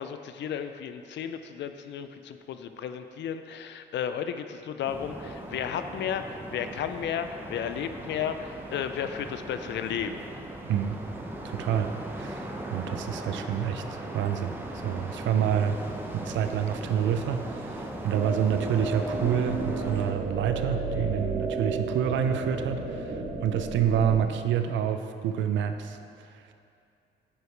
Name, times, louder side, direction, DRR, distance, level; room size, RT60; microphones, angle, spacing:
voice 1, 0.0-10.3, left 8 dB, 65° left, 9 dB, 0.4 m, -33 dB
sound 1, 4.9-20.1, right 1 dB, 10° right, 0.7 m, -38 dB
voice 2, 10.7-11.0 11.4-14.5 14.8-15.8 16.1-26.0 26.3-26.4, right 8 dB, 70° right, 8 dB, 0.5 m, -28 dB
sound 2, 18.1-24.2, right 3 dB, 55° right, 1.2 m, -32 dB
9.5 x 4.8 x 3.3 m, 2.5 s
cardioid pair, 90°, 20 cm